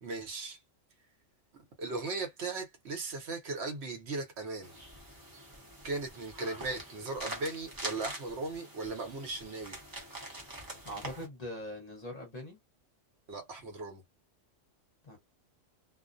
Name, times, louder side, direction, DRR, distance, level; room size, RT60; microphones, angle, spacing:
voice 1, 0.0-0.6 1.8-4.7 5.8-9.8 13.3-14.0, right 3 dB, 65° right, 1.0 m, -37 dB
sound 1, 4.6-11.3, right 1 dB, 20° right, 0.7 m, -45 dB
voice 2, 10.8-12.6 15.0-15.2, left 1 dB, 35° left, 0.9 m, -42 dB
2.4 x 2.0 x 2.5 m
omnidirectional pair, 1.3 m